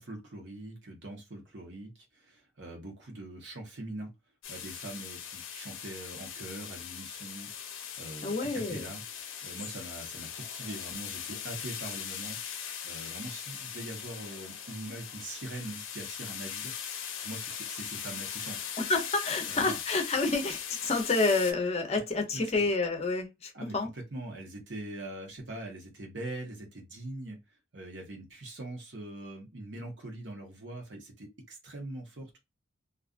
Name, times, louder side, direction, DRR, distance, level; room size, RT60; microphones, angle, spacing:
voice 1, 0.0-4.1 4.5-9.0 9.4-12.4 12.8-16.8 17.2-18.7 19.4-19.8 22.3-22.7 23.5-27.4 27.7-32.4, right 1 dB, 65° right, 1.0 m, -42 dB
sound 1, 4.4-21.5, left 8 dB, 80° left, 0.6 m, -40 dB
voice 2, 8.2-8.8 18.8-23.9, left 3 dB, 30° left, 0.6 m, -29 dB
2.4 x 2.3 x 2.4 m
head